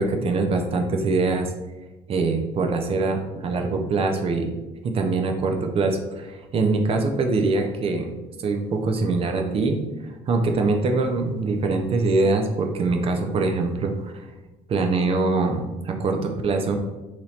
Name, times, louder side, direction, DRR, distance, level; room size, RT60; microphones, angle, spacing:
voice 1, 0.0-1.5 2.1-4.5 4.8-8.1 8.4-9.8 10.3-14.1 14.7-16.8, right 3 dB, 40° right, 5 dB, 0.6 m, -23 dB
3.0 x 2.9 x 4.0 m, 1.1 s
cardioid pair, 110°, 14 cm